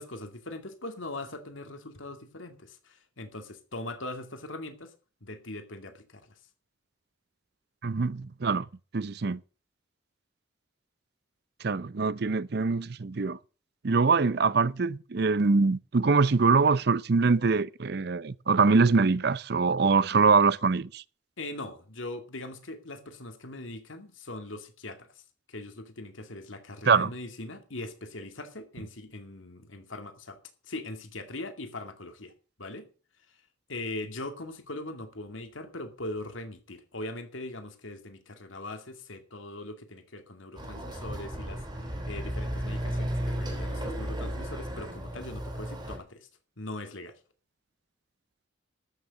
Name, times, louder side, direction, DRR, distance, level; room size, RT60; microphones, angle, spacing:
voice 1, 0.0-4.9 5.2-6.3 21.4-25.1 25.5-30.4 30.7-32.3 32.6-32.9 33.7-46.3 46.6-47.1, left 2 dB, 85° left, 2.4 m, -40 dB
voice 2, 7.8-8.7 8.9-9.4 11.6-13.4 13.8-21.0 26.9-27.1, right 4 dB, 55° right, 0.6 m, -24 dB
Chatter / Car passing by / Motorcycle, 40.5-46.0, equal, 25° right, 3.7 m, -34 dB
13.0 x 6.6 x 7.5 m
head